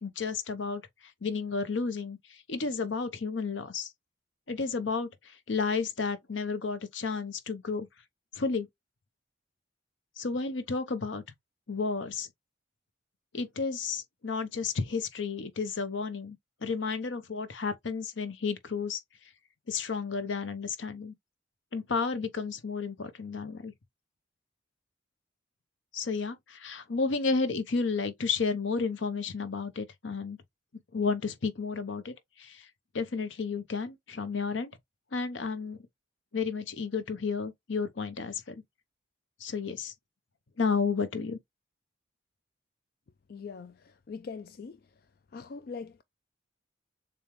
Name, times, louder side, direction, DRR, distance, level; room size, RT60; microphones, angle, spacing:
voice 1, 0.0-0.8 1.2-2.2 2.5-3.9 4.5-7.9 8.3-8.7 10.2-11.2 11.7-12.3 13.3-16.4 16.6-19.0 19.7-21.1 21.7-23.7 25.9-30.4 30.9-32.1 32.4-32.7 32.9-34.7 35.1-35.8 36.3-38.5 39.4-39.9 40.6-41.4, left 4 dB, 80° left, 0.8 m, -32 dB
voice 2, 43.3-43.7 44.1-44.8 45.3-46.0, left 5 dB, 50° left, 0.4 m, -41 dB
7.0 x 2.3 x 3.0 m
head